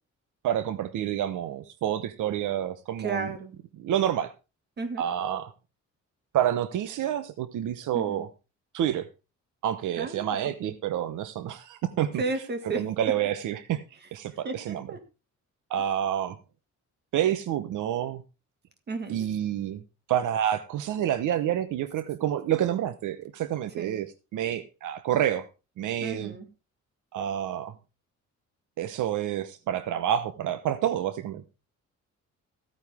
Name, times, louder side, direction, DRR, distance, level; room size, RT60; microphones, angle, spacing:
voice 1, 0.4-3.3 3.8-4.3 5.0-5.5 6.3-8.3 8.7-9.1 9.6-12.2 12.7-13.8 14.1-14.9 15.7-16.4 17.1-18.2 19.1-19.8 20.1-25.5 25.8-26.3 27.1-27.7 28.8-31.4, right 11 dB, 80° right, 13 dB, 0.9 m, -28 dB
voice 2, 3.0-3.5 4.8-5.0 7.9-8.2 10.0-10.7 12.2-12.8 14.4-15.0 18.9-19.2 23.8-24.0 26.0-26.5, right 3 dB, 35° right, 7 dB, 2.1 m, -33 dB
14.5 x 9.3 x 3.6 m, 0.30 s
cardioid pair, 180°, 31 cm